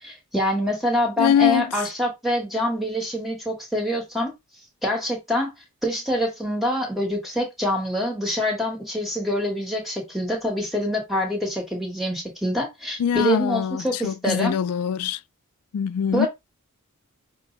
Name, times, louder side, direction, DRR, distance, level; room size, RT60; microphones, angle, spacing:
voice 1, 0.0-4.3 4.8-5.5 5.8-14.6 16.1-16.3, equal, ahead, 1.5 m, -25 dB
voice 2, 1.2-1.9 13.0-15.2 15.7-16.3, left 8 dB, 90° left, 0.3 m, -23 dB
6.2 x 2.1 x 3.9 m
head